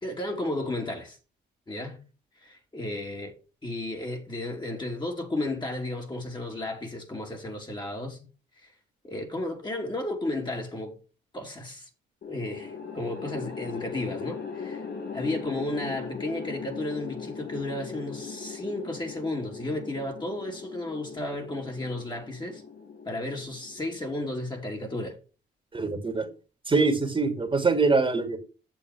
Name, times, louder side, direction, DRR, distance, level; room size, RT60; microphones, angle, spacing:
voice 1, 0.0-1.2 1.7-2.0 2.4-3.4 3.6-8.2 8.6-8.7 9.0-10.9 11.3-11.9 12.3-14.9 15.1-22.6 23.0-25.2, left 1 dB, 20° left, 3.2 m, -33 dB
sound 1, 12.2-24.5, left 5 dB, 55° left, 2.4 m, -39 dB
voice 2, 25.7-26.3 26.7-28.4, right 3 dB, 25° right, 2.6 m, -24 dB
9.0 x 7.1 x 6.2 m
cardioid pair, 90°, 20 cm